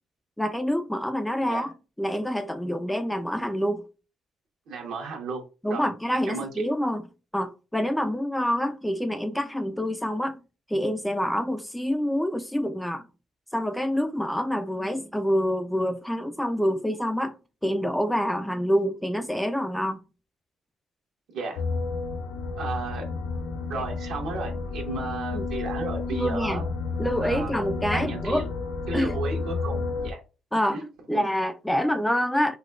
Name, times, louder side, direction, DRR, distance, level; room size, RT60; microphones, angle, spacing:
voice 1, 0.4-3.8 5.6-7.0 7.3-10.4 10.7-13.1 13.5-17.4 17.6-20.0 25.3-25.4 26.1-26.6 27.0-28.5 28.9-29.2 30.5-32.6, equal, 5° left, 0.3 m, -27 dB
voice 2, 4.7-5.4 5.7-5.9 6.3-6.7 21.3-21.6 22.6-23.0 23.7-26.6 27.2-27.5 27.9-28.5 28.9-30.2 30.7-30.8 31.1-31.2, right 4 dB, 75° right, 1.1 m, -33 dB
sound 1, 21.6-30.1, left 4 dB, 80° left, 0.4 m, -31 dB
3.9 x 2.2 x 2.4 m
supercardioid pair, 75°, 0 cm